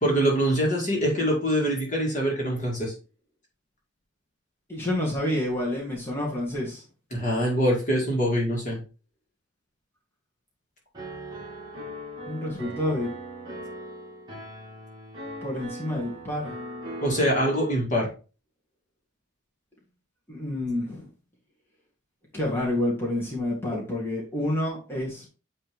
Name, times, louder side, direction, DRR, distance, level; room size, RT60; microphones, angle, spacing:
voice 1, 0.0-2.9 7.1-8.8 17.0-18.1, equal, 35° left, -1 dB, 2.0 m, -24 dB
voice 2, 4.7-6.8 12.3-13.1 15.4-16.5 20.3-21.1 22.3-25.3, left 1 dB, 10° left, -5 dB, 1.8 m, -28 dB
Piano, 10.9-17.8, equal, 20° right, 2.1 m, -39 dB
8.8 x 3.3 x 3.5 m, 0.34 s
head